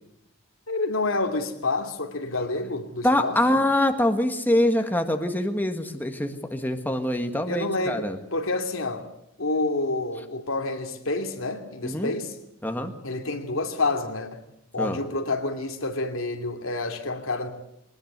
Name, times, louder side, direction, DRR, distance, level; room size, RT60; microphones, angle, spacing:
voice 1, 0.7-3.4 7.4-9.1 9.4-12.4 13.0-14.4 14.7-17.5, left 2 dB, 80° left, 2.7 m, -28 dB
voice 2, 3.0-8.2 11.8-12.1 12.6-12.9 14.8-15.0, left 1 dB, 10° left, 1.7 m, -24 dB
22.0 x 19.5 x 8.1 m
head